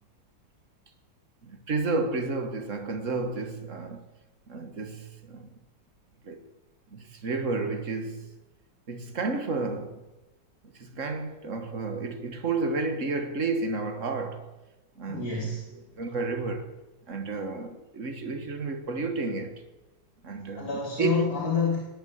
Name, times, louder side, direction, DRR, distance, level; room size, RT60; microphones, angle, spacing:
voice 1, 1.4-4.1 4.5-5.5 6.2-6.4 6.9-8.3 8.9-10.0 10.7-14.5 15.0-15.3 15.7-16.7 17.1-19.6 20.2-21.2, right 3 dB, 45° right, 1.9 m, -31 dB
voice 2, 15.1-15.7 20.5-21.8, left 4 dB, 55° left, 3.3 m, -28 dB
19.0 x 9.0 x 8.2 m
omnidirectional pair, 2.0 m